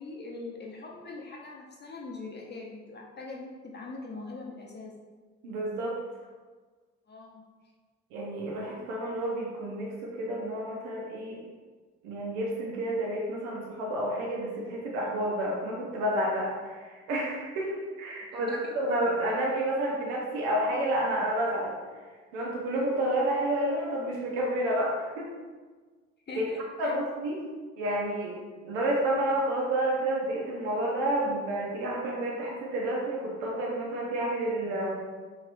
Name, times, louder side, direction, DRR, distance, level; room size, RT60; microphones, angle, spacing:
voice 1, 0.0-4.9 7.1-7.4 18.3-18.7 26.3-27.0, left 3 dB, 30° left, -2 dB, 0.7 m, -42 dB
voice 2, 5.4-6.0 8.1-11.5 12.0-21.7 22.3-25.3 26.3-26.4 26.8-27.4 27.8-28.4 28.6-34.9, right 1 dB, 80° right, -3 dB, 0.6 m, -30 dB
3.0 x 2.9 x 2.5 m, 1.4 s
hypercardioid pair, 40°, 34 cm